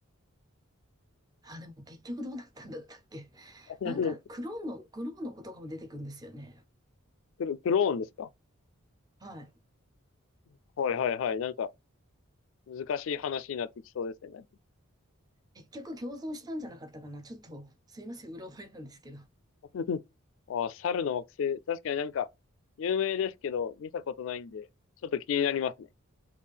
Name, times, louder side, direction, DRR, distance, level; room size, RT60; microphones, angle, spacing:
voice 1, 1.4-6.6 9.2-9.5 15.5-19.3, left 1 dB, 20° right, 0.4 m, -41 dB
voice 2, 3.8-4.1 7.4-8.3 10.8-11.7 12.7-13.7 14.0-14.4 19.7-20.0 20.5-22.3 22.8-24.7 25.0-25.9, left 7 dB, 65° left, 0.3 m, -30 dB
3.3 x 2.4 x 3.4 m
head